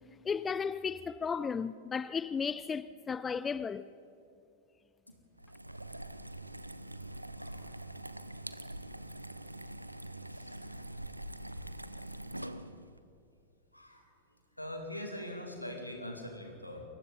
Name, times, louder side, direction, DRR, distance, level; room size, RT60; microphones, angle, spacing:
voice 1, 0.2-3.9, left 6 dB, 20° left, 0.4 m, -34 dB
sound 1, 5.4-13.0, right 1 dB, 85° right, 0.7 m, -44 dB
voice 2, 7.4-7.7 10.3-10.8 13.7-14.1 14.6-16.8, left 1 dB, 90° left, 2.7 m, -43 dB
28.5 x 22.5 x 4.1 m
figure-of-eight pair, 90°, 0 cm